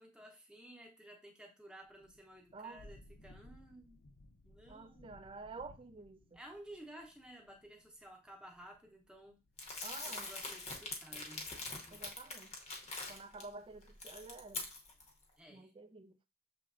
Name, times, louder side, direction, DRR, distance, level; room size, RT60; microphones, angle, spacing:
voice 1, 0.0-4.0 4.4-5.1 6.3-9.4 10.1-12.0 12.8-13.0 15.4-15.7, right 1 dB, 5° right, 0.8 m, -55 dB
Thunder / Rain, 1.8-11.4, left 1 dB, 60° left, 0.6 m, -62 dB
voice 2, 2.5-2.8 4.7-6.4 9.8-10.3 11.9-12.5 13.1-14.7 15.5-16.2, right 3 dB, 25° right, 0.3 m, -50 dB
Crumpling crinkling, 9.6-13.4 13.8-15.1, left 3 dB, 30° left, 0.8 m, -44 dB
6.8 x 3.1 x 2.5 m
head